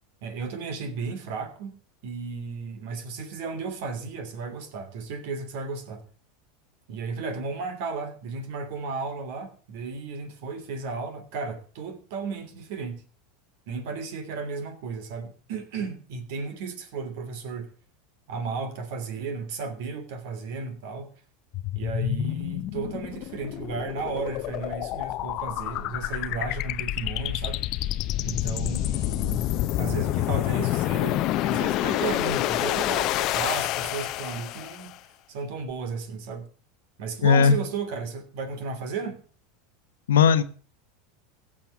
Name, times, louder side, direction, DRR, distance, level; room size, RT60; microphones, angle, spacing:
voice 1, 0.2-1.8 2.0-6.0 6.9-13.0 13.7-17.7 18.3-21.1 21.7-27.6 28.2-29.5 29.8-34.9 35.3-36.5 37.0-39.2, right 4 dB, 65° right, 3.0 m, -34 dB
sound 1, 21.5-34.9, left 15 dB, 50° left, 0.7 m, -28 dB
voice 2, 37.2-37.6 40.1-40.4, left 6 dB, 90° left, 1.1 m, -17 dB
16.0 x 6.6 x 7.1 m
hypercardioid pair, 105°, 0 cm